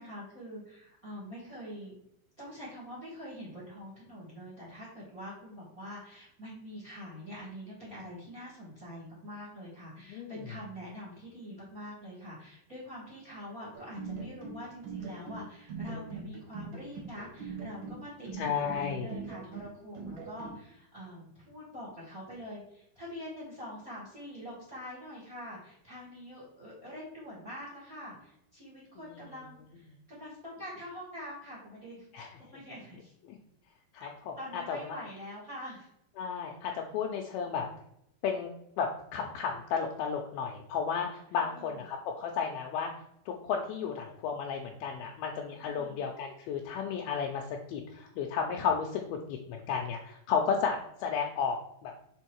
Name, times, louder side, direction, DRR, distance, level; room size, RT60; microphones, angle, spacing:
voice 1, 0.0-2.0 2.4-33.1 34.0-34.1 34.4-35.9 41.4-41.8 45.6-46.1, equal, 25° right, -5 dB, 2.3 m, -45 dB
sound 1, 13.7-20.6, right 4 dB, 75° right, 1.1 m, -41 dB
voice 2, 18.4-19.1 32.1-32.3 33.3-33.4 33.9-35.0 36.2-37.7 38.2-38.5 38.8-42.9 43.3-51.9, left 6 dB, 80° left, 1 dB, 2.4 m, -33 dB
6.2 x 4.5 x 4.5 m, 0.76 s
omnidirectional pair, 4.6 m